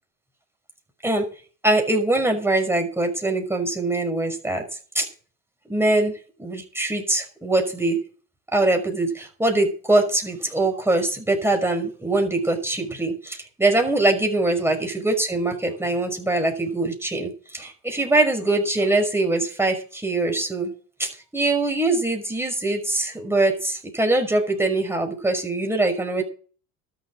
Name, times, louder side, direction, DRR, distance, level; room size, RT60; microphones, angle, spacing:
voice 1, 1.6-4.6 4.9-5.1 5.7-6.1 6.4-8.0 8.5-20.7 21.0-26.2, right 2 dB, 5° right, 3 dB, 5.8 m, -23 dB
13.0 x 7.0 x 9.9 m, 0.40 s
cardioid pair, 115°, 36 cm